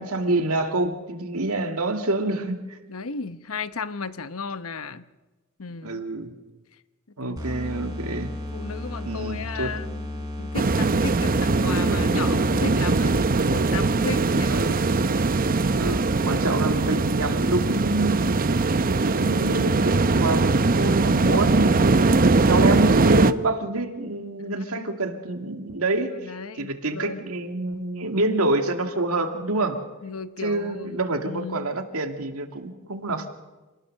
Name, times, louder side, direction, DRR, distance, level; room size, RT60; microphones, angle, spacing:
voice 1, 0.0-2.8 5.8-6.3 7.2-8.3 9.0-9.7 14.5-14.8 15.8-18.6 19.0-29.8 30.4-33.3, right 2 dB, 75° right, 6 dB, 2.3 m, -27 dB
voice 2, 2.9-5.0 5.6-6.0 7.2-7.4 8.5-13.2 13.5-14.8 15.8-16.0 24.6-24.9 26.1-27.2 30.0-31.7, left 4 dB, 70° left, 12 dB, 1.0 m, -35 dB
sound 1, 7.4-13.3, left 1 dB, 15° right, 4.1 m, -34 dB
sound 2, 10.5-23.3, right 3 dB, 40° right, 0.7 m, -21 dB
27.5 x 19.0 x 6.6 m, 1.2 s
head